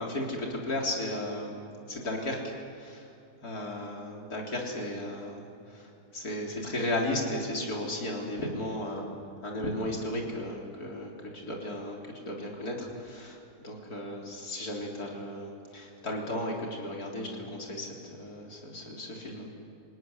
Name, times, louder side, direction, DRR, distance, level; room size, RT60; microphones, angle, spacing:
voice 1, 0.0-1.6 1.9-3.0 3.4-9.1 9.4-11.1 11.4-13.4 13.6-19.5, left 1 dB, 70° left, -1 dB, 4.3 m, -35 dB
27.5 x 18.0 x 9.7 m, 2.5 s
omnidirectional pair, 1.7 m